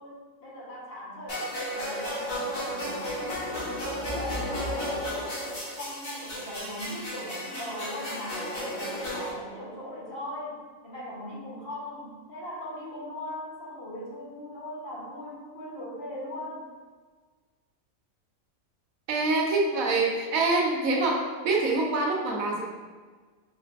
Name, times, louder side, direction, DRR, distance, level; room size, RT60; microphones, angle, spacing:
voice 1, 0.0-5.3 5.7-16.7, left 1 dB, 55° left, -6 dB, 1.1 m, -39 dB
sound 1, 1.3-9.3, equal, 90° left, 1.6 m, -33 dB
voice 2, 19.1-22.6, right 3 dB, 90° right, -1 dB, 1.2 m, -25 dB
4.9 x 3.2 x 2.4 m, 1.5 s
omnidirectional pair, 1.4 m